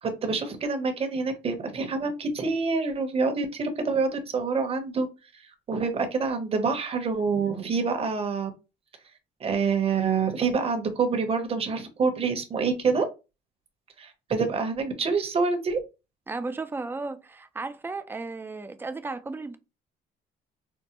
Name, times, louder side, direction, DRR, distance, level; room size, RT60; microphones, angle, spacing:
voice 1, 0.0-5.1 5.7-8.5 9.4-13.0 14.0-15.8, right 4 dB, 35° right, 0.9 m, -26 dB
voice 2, 16.3-19.6, right 3 dB, 15° right, 0.4 m, -34 dB
4.5 x 2.1 x 2.9 m
cardioid pair, 110°, 17 cm